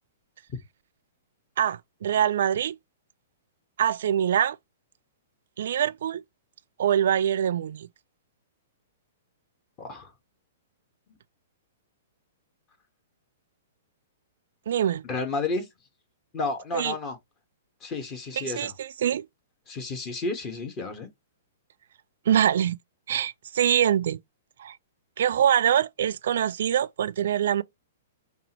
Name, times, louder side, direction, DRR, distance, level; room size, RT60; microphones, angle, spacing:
voice 1, 1.6-2.8 3.8-4.6 5.6-6.2 6.8-7.9 14.7-15.0 16.7-16.9 18.4-19.3 22.3-22.8 23.1-24.2 24.6-24.8 25.2-27.6, right 10 dB, 70° right, 0.3 m, -24 dB
voice 2, 9.8-10.1 15.0-15.7 16.3-17.2 17.8-18.7 19.7-21.1, left 3 dB, 25° left, 1.4 m, -31 dB
5.2 x 2.6 x 3.0 m
hypercardioid pair, 145°, 0 cm